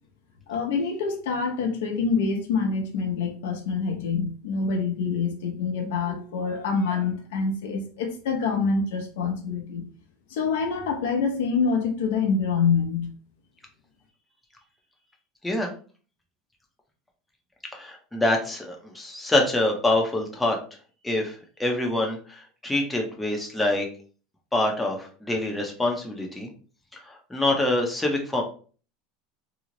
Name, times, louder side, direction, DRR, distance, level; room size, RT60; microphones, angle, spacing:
voice 1, 0.5-9.9 10.3-13.2, left 5 dB, 85° left, 4 dB, 0.8 m, -26 dB
voice 2, 17.7-20.6 21.0-23.9 24.5-26.5 26.9-28.4, left 2 dB, 5° left, 1 dB, 0.6 m, -25 dB
3.0 x 2.0 x 3.7 m, 0.40 s
supercardioid pair, 155°, 0 cm